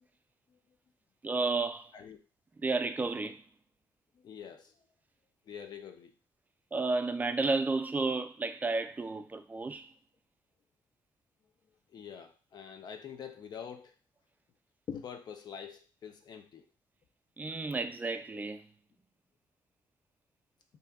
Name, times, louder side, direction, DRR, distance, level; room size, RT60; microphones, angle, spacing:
voice 1, 1.2-1.9 2.6-3.4 6.7-9.9 17.4-18.6, right 3 dB, 20° right, 0.3 m, -32 dB
voice 2, 4.2-4.7 5.5-6.1 11.9-13.9 14.9-16.7, left 7 dB, 60° left, 0.4 m, -45 dB
2.7 x 2.2 x 3.5 m
cardioid pair, 95°, 8 cm